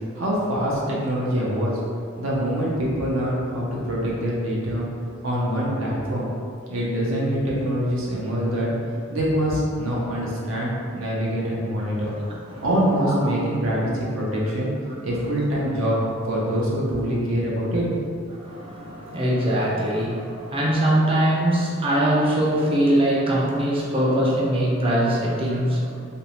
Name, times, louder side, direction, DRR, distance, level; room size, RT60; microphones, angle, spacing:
voice 1, 0.2-1.7 2.2-4.9 5.2-6.3 6.7-8.7 9.1-12.1 12.6-14.7 15.0-16.0 16.3-18.1, equal, 80° right, -5 dB, 0.6 m, -24 dB
voice 2, 18.3-26.0, right 1 dB, 25° right, -4 dB, 0.4 m, -22 dB
2.6 x 2.0 x 2.9 m, 2.2 s
head